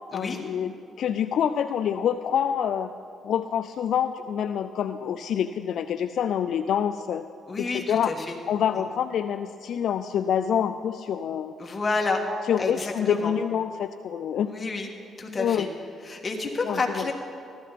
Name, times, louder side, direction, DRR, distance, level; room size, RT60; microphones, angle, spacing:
voice 1, 0.1-2.9 3.2-7.2 7.6-8.1 8.5-11.5 12.5-14.5 15.4-15.7 16.6-17.0, left 9 dB, 70° left, 8 dB, 0.3 m, -26 dB
voice 2, 7.5-8.3 11.6-12.2 12.6-13.3 14.4-14.9 15.2-15.7 16.0-17.1, left 3 dB, 30° left, 2 dB, 1.7 m, -29 dB
14.5 x 12.0 x 4.1 m, 2.5 s
cardioid pair, 90°, 0 cm